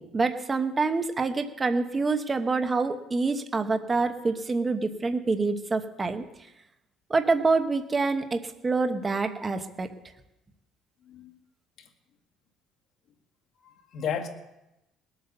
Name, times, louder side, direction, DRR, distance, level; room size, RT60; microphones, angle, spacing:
voice 1, 0.0-6.2 7.1-9.9, right 3 dB, 15° right, 7 dB, 1.0 m, -26 dB
voice 2, 11.0-11.4 11.8-11.9 13.6-14.3, left 7 dB, 45° left, 5 dB, 1.8 m, -34 dB
20.0 x 8.2 x 6.7 m, 0.93 s
cardioid pair, 165°, 0 cm